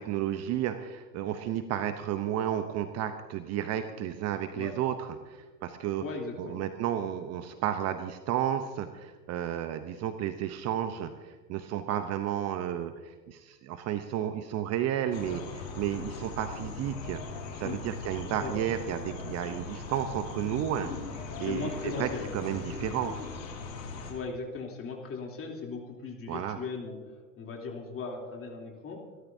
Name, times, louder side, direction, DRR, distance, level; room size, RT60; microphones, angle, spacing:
voice 1, 0.0-6.0 6.4-15.4 15.8-17.2 17.6-23.1 26.3-26.6, right 10 dB, 30° right, 9 dB, 0.8 m, -32 dB
voice 2, 6.0-6.6 15.3-15.4 17.6-17.8 18.2-18.6 21.4-22.3 24.1-29.0, left 4 dB, 25° left, 0 dB, 3.2 m, -38 dB
sound 1, 15.1-24.1, left 4 dB, 85° left, 4.7 m, -39 dB
27.5 x 13.0 x 2.7 m, 1.4 s
hypercardioid pair, 115°, 49 cm